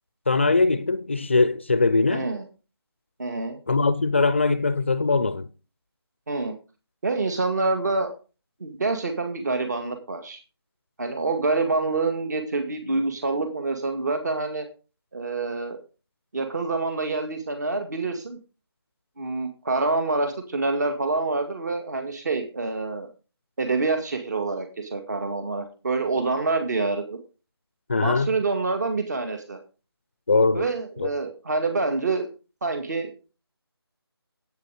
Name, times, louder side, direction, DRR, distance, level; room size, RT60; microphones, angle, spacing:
voice 1, 0.3-2.3 3.7-5.5 27.9-28.3 30.3-30.7 31.0-31.1, left 3 dB, 30° left, 0.5 m, -21 dB
voice 2, 2.1-2.4 3.2-3.6 6.3-6.5 7.0-8.1 8.6-10.4 11.0-14.7 15.1-15.8 16.3-18.4 19.2-23.1 23.6-27.2 28.0-29.6 30.5-32.3 32.6-33.1, right 3 dB, 40° right, 2.0 m, -26 dB
10.5 x 8.8 x 5.0 m
figure-of-eight pair, 165°, 14 cm